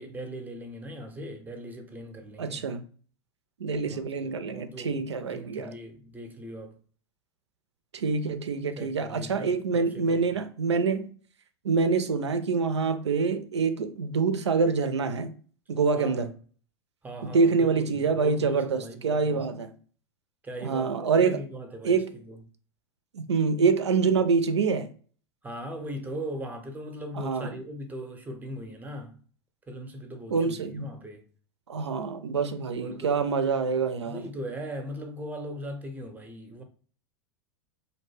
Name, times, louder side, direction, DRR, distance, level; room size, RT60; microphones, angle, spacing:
voice 1, 0.0-2.7 3.9-6.7 8.8-10.4 16.0-16.3 17.0-19.5 20.4-22.4 25.4-29.2 29.7-31.2 32.8-33.3 34.0-36.6, equal, 10° right, 0.6 m, -39 dB
voice 2, 2.4-2.8 3.6-5.7 7.9-11.1 11.6-15.3 15.7-16.3 17.2-19.7 20.6-21.4 21.8-22.2 23.1-24.9 27.1-27.5 30.3-30.9 31.7-34.3, right 5 dB, 80° right, 0.4 m, -26 dB
2.5 x 2.1 x 3.3 m
figure-of-eight pair, 95°, 14 cm